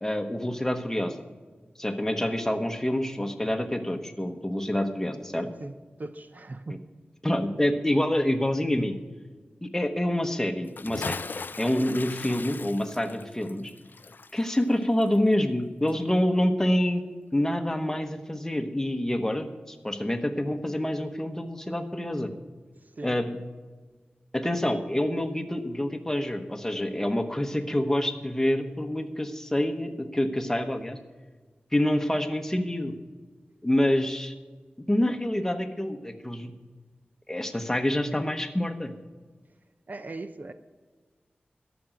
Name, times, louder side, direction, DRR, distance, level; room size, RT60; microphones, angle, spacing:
voice 1, 0.0-1.2 1.8-5.5 7.2-8.9 9.6-11.2 11.6-13.7 14.3-17.0 17.3-22.3 23.0-23.4 24.3-31.0 31.7-32.9 33.6-34.3 34.9-36.5 37.3-38.9, left 1 dB, 10° left, 6 dB, 1.1 m, -27 dB
voice 2, 5.6-6.8 23.0-23.2 34.0-34.1 39.9-40.5, right 2 dB, 50° right, 10 dB, 0.6 m, -39 dB
Bathtub (filling or washing) / Splash splatter, 10.6-15.6 15.9-16.0, left 4 dB, 60° left, 0.4 m, -38 dB
13.0 x 6.1 x 9.0 m, 1.4 s
wide cardioid pair, 95°, 4 cm